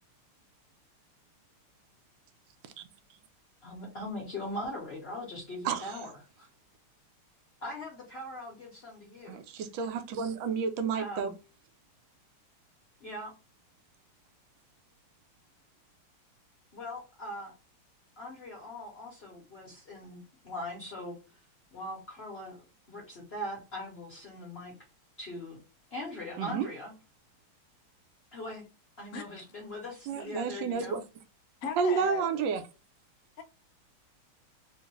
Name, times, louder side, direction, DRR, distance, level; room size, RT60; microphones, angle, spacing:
voice 1, 3.6-6.5 7.6-9.4 9.8-9.9 11.0-11.3 13.0-13.3 16.7-17.5 18.2-21.1 21.7-22.6 22.9-24.7 25.2-25.6 25.9-26.9 28.3-28.6 29.0-31.0, left 1 dB, 50° left, 0.7 m, -41 dB
voice 2, 5.6-6.0 9.3-11.3 26.4-26.7 30.1-31.0 31.8-32.6, right 6 dB, 75° right, 1.1 m, -30 dB
voice 3, 29.1-29.5 31.6-32.4 33.4-33.5, left 6 dB, 90° left, 0.7 m, -38 dB
3.7 x 2.5 x 2.9 m
omnidirectional pair, 2.4 m